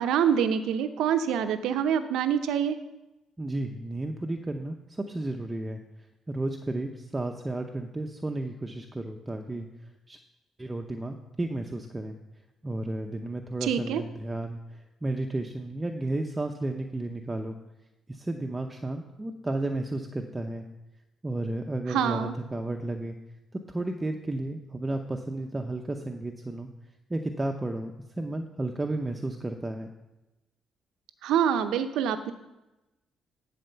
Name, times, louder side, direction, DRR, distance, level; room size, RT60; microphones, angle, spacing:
voice 1, 0.0-2.8 13.6-14.0 21.9-22.4 31.2-32.3, right 8 dB, 85° right, 10 dB, 0.7 m, -26 dB
voice 2, 3.4-5.8 6.3-9.7 10.1-10.2 10.6-12.2 12.6-17.6 18.1-20.7 21.2-23.1 23.5-26.7 27.1-29.9, right 2 dB, 20° right, 4 dB, 0.8 m, -33 dB
12.0 x 4.3 x 6.8 m, 0.99 s
cardioid pair, 90°, 0 cm